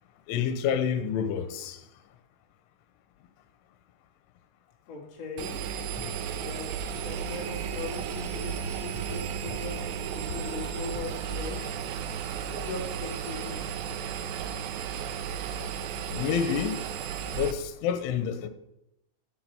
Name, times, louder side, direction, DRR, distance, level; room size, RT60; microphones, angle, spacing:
voice 1, 0.3-1.8 16.1-16.8 17.4-18.5, left 7 dB, 80° left, 3.3 m, -28 dB
voice 2, 4.9-5.6 6.4-6.7 7.0-11.6 12.4-13.6, left 4 dB, 45° left, 2.5 m, -40 dB
Engine, 5.4-17.5, right 7 dB, 75° right, 2.7 m, -34 dB
14.0 x 7.8 x 6.0 m
omnidirectional pair, 5.8 m